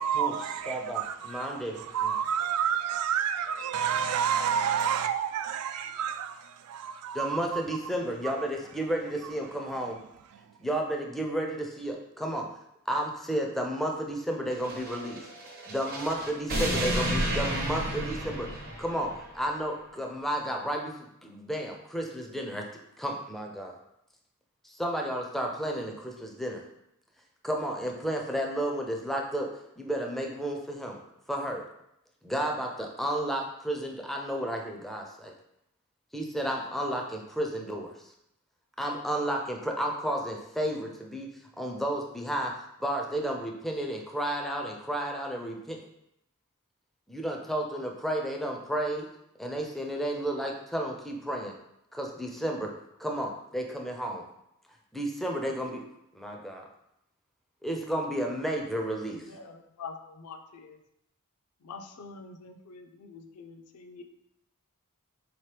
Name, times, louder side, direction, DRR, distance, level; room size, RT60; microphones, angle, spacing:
voice 1, 0.0-7.6 10.3-10.4, right 8 dB, 75° right, 0.3 m, -30 dB
voice 2, 0.7-2.1 7.1-10.0 10.6-12.5 12.9-15.2 15.7-22.7 23.0-23.8 24.6-26.6 27.4-31.0 31.3-31.6 32.2-35.3 36.1-37.9 38.8-41.3 41.6-42.5 42.8-45.8 47.1-49.1 49.4-51.5 51.9-52.7 53.0-54.2 54.9-55.8 56.1-56.7 57.6-59.3, right 1 dB, ahead, 0.4 m, -32 dB
sound 1, 14.5-19.3, right 1 dB, 45° right, 0.7 m, -32 dB
voice 3, 59.1-60.8 61.6-64.0, left 4 dB, 75° left, 0.5 m, -45 dB
3.9 x 2.9 x 3.3 m
head